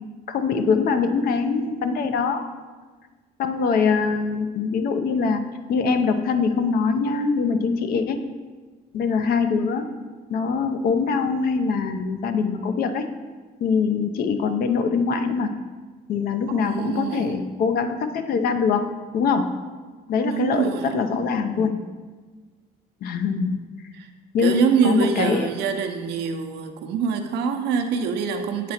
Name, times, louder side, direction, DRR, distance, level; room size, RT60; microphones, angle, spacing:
voice 1, 0.3-2.5 3.4-5.4 5.7-8.2 8.9-9.9 10.3-13.1 13.6-15.5 16.1-18.8 19.1-19.5 20.1-21.7 23.0-23.6 24.3-25.5, left 5 dB, 65° left, 8 dB, 0.6 m, -23 dB
voice 2, 16.5-17.4 20.3-21.3 24.0-24.1 24.4-28.7, right 6 dB, 80° right, 5 dB, 0.7 m, -25 dB
7.5 x 3.8 x 4.3 m, 1.4 s
cardioid pair, 110°, 17 cm